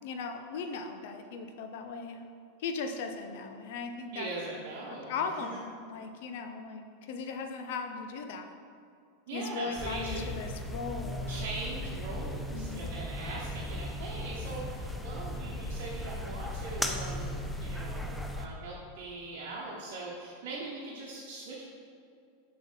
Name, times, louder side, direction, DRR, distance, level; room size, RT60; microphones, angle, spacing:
voice 1, 0.0-2.2 2.6-4.6 5.1-5.6 5.8-8.5 9.3-11.5 12.5-12.9, left 4 dB, 55° left, 6 dB, 0.6 m, -38 dB
voice 2, 4.1-5.1 5.4-5.6 9.3-10.2 11.3-21.6, right 2 dB, 50° right, -5 dB, 1.0 m, -41 dB
sound 1, 9.8-18.5, left 1 dB, 5° left, 0.6 m, -37 dB
7.2 x 5.2 x 4.6 m, 2.4 s
figure-of-eight pair, 90°, 0 cm